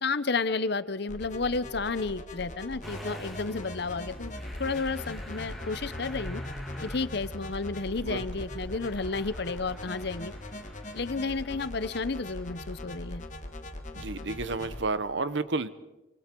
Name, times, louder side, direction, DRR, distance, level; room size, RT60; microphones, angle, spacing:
voice 1, 0.0-4.3 4.6-6.4 6.8-10.3 10.9-13.2, left 4 dB, 55° left, 15 dB, 0.8 m, -31 dB
sound 1, 1.1-14.8, left 1 dB, 35° left, 2.0 m, -41 dB
Motor vehicle (road) / Engine starting, 2.8-14.4, equal, ahead, 2.4 m, -45 dB
voice 2, 13.9-15.7, right 3 dB, 60° right, 14 dB, 1.0 m, -31 dB
26.0 x 25.0 x 4.6 m, 1.0 s
head